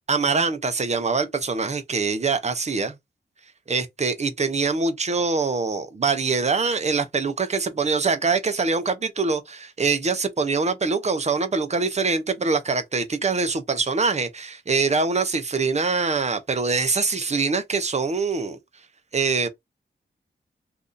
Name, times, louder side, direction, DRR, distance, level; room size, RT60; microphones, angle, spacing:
voice 1, 0.1-2.9 3.7-18.6 19.1-19.5, right 4 dB, 35° right, 0.6 m, -24 dB
2.7 x 2.5 x 3.7 m
wide cardioid pair, 100°, 19 cm